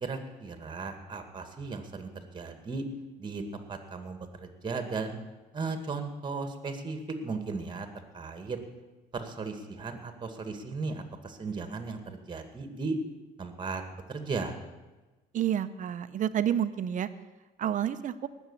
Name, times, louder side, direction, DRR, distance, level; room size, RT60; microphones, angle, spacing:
voice 1, 0.0-2.9 3.2-5.2 5.5-7.9 8.1-8.6 9.1-13.0 13.4-14.5, right 4 dB, 25° right, 7 dB, 2.1 m, -36 dB
voice 2, 15.3-17.1 17.6-18.3, right 10 dB, 50° right, 12 dB, 0.9 m, -29 dB
19.0 x 7.3 x 7.2 m, 1.2 s
cardioid pair, 110°, 17 cm